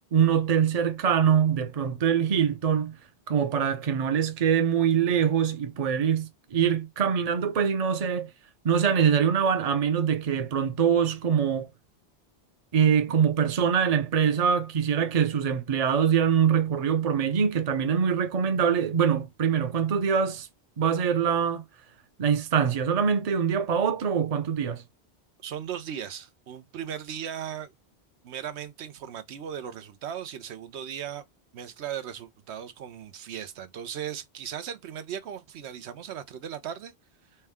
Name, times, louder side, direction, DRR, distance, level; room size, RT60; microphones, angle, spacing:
voice 1, 0.1-2.9 3.3-8.3 8.6-11.7 12.7-20.5 20.8-21.6 22.2-24.8, right 7 dB, 40° right, 0.7 m, -24 dB
voice 2, 25.4-27.7 28.2-31.2 31.5-36.9, right 9 dB, 90° right, 1.0 m, -37 dB
4.4 x 2.2 x 3.5 m
omnidirectional pair, 1.1 m